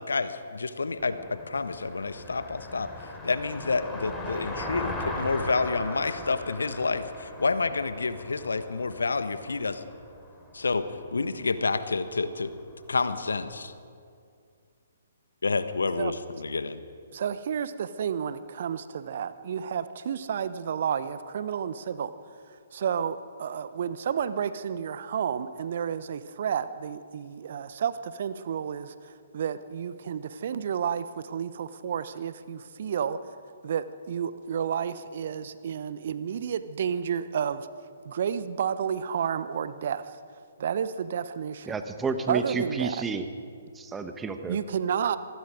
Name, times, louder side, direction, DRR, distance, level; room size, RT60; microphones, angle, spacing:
voice 1, 0.0-2.9 3.2-9.9 10.5-10.8 11.1-12.5 12.9-13.7 15.4-16.8, left 4 dB, 70° left, 11 dB, 1.4 m, -29 dB
Car passing by, 1.0-13.3, left 1 dB, 5° left, 3.4 m, -39 dB
voice 2, 17.1-22.1 22.7-33.2 33.6-37.7 38.0-40.1 40.6-41.7 42.3-43.0 44.5-45.2, right 8 dB, 50° right, 14 dB, 1.0 m, -31 dB
voice 3, 41.7-43.2 43.7-44.6, right 4 dB, 10° right, 8 dB, 1.4 m, -31 dB
26.0 x 19.5 x 5.1 m, 2.3 s
figure-of-eight pair, 130°, 0 cm